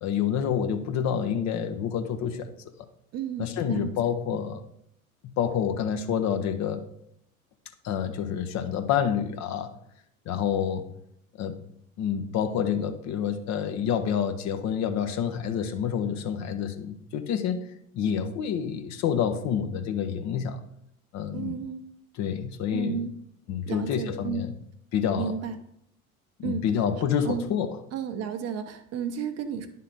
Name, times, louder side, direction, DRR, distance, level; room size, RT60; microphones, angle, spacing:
voice 1, 0.0-2.5 3.4-4.6 5.4-6.9 7.8-9.7 10.3-10.9 11.4-11.6 12.0-17.6 17.9-20.6 21.1-21.5 22.2-23.0 23.5-24.5 24.9-25.3 26.4-27.8, left 8 dB, 40° left, 8 dB, 0.7 m, -28 dB
voice 2, 3.1-3.9 21.3-21.8 22.7-23.1 23.7-24.4 25.2-25.6 26.4-26.6 27.2-27.5 27.9-29.7, right 7 dB, 35° right, 7 dB, 0.7 m, -32 dB
10.5 x 3.7 x 3.9 m, 0.72 s
figure-of-eight pair, 70°, 44 cm